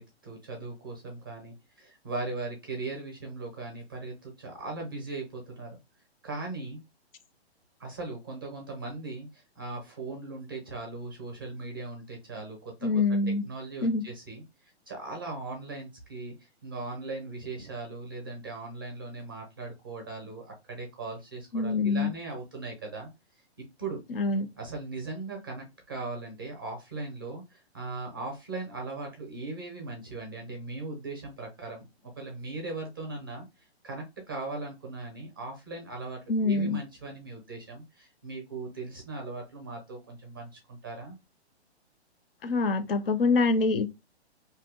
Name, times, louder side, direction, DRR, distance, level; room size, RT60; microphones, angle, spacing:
voice 1, 0.0-5.8 6.2-6.8 7.8-12.9 13.3-14.4 14.9-16.3 16.6-23.1 23.6-24.0 24.6-33.4 33.8-41.2, right 3 dB, 20° right, 0.5 m, -39 dB
voice 2, 12.8-13.4 13.8-14.0 21.5-22.1 24.1-24.5 36.3-36.8 42.4-43.9, left 3 dB, 60° left, 0.5 m, -25 dB
2.6 x 2.0 x 3.7 m
hypercardioid pair, 170°, 33 cm